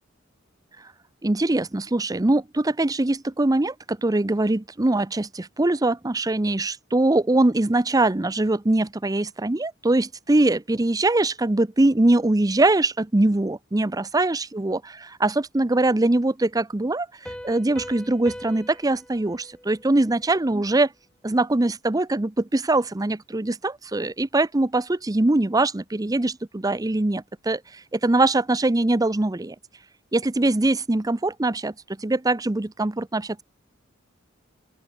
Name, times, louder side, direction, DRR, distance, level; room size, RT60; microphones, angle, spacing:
voice 1, 1.2-17.1 17.4-20.9 21.2-27.6 27.9-29.6 30.1-31.7 32.0-33.4, right 2 dB, 20° right, 0.6 m, -22 dB
Piano, 17.3-20.7, equal, 5° left, 1.1 m, -42 dB
open air
head